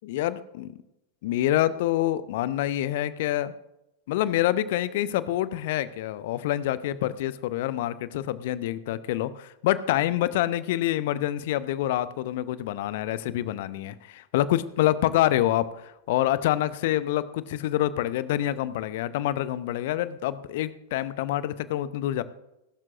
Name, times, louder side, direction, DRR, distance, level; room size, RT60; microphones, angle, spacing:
voice 1, 0.0-0.7 1.2-3.5 4.1-22.2, left 13 dB, 50° left, 16 dB, 0.8 m, -26 dB
21.5 x 12.0 x 2.6 m, 0.89 s
figure-of-eight pair, 90°, 0 cm